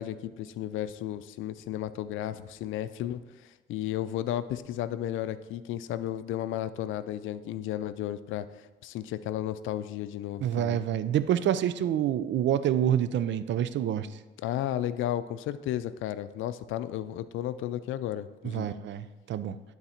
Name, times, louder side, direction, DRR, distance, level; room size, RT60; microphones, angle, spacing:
voice 1, 0.0-10.8 14.4-18.8, left 12 dB, 85° left, 13 dB, 0.4 m, -33 dB
voice 2, 10.4-14.1 18.5-19.6, right 10 dB, 65° right, 13 dB, 0.5 m, -27 dB
11.5 x 4.1 x 4.3 m, 1.2 s
cardioid pair, 90°, 20 cm